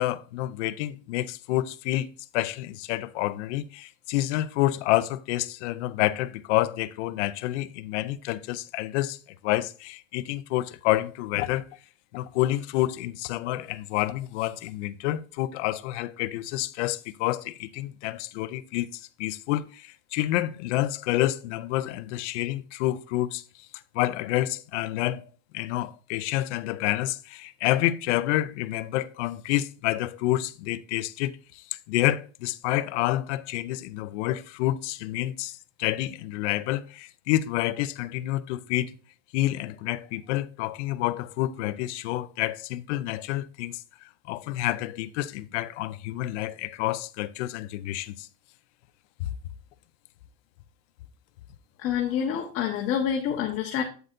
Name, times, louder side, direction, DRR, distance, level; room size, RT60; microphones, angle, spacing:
voice 1, 0.0-2.1 2.3-9.2 9.4-11.6 12.1-23.4 23.9-31.4 31.9-39.0 39.3-43.8 44.3-48.3 49.2-49.3, left 15 dB, 65° left, 0.6 m, -28 dB
voice 2, 51.8-53.8, left 8 dB, 35° left, 1.4 m, -27 dB
8.1 x 7.8 x 2.6 m
supercardioid pair, 150°, 38 cm